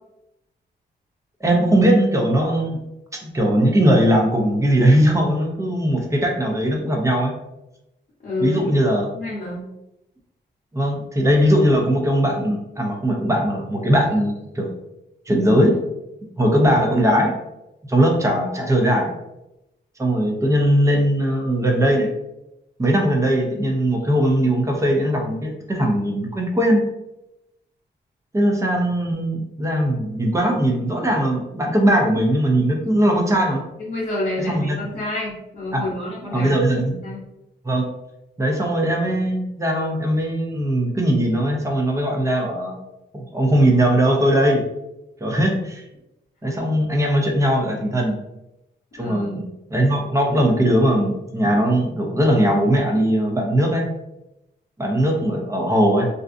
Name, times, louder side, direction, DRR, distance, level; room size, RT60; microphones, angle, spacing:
voice 1, 1.4-2.8 3.1-7.3 8.4-9.1 10.7-14.7 15.3-15.8 16.4-17.4 17.9-19.1 20.0-22.1 22.8-26.9 28.3-33.6 34.5-34.8 35.7-35.8 36.3-36.9 37.6-37.8 38.4-42.8 43.1-44.6 45.2-45.8 46.4-48.2 49.0-49.4 49.7-53.9 54.8-56.1, right 1 dB, 15° right, 0 dB, 0.6 m, -19 dB
voice 2, 8.2-8.7 9.1-9.6 33.3-33.5 33.8-36.5 36.8-37.2 49.0-49.5, left 1 dB, 50° left, -8 dB, 1.0 m, -28 dB
2.5 x 2.2 x 2.5 m, 0.90 s
cardioid pair, 85°, 19 cm